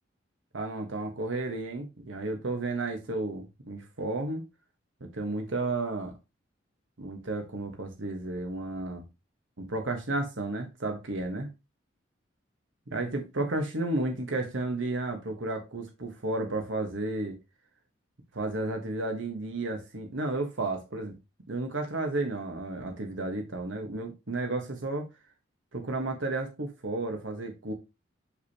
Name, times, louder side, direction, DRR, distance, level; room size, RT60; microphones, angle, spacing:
voice 1, 0.5-4.4 5.0-6.1 7.0-9.0 9.6-11.5 12.9-17.4 18.3-21.2 21.5-25.1 25.7-27.7, right 2 dB, 80° right, 1.2 m, -32 dB
6.3 x 5.8 x 2.8 m
head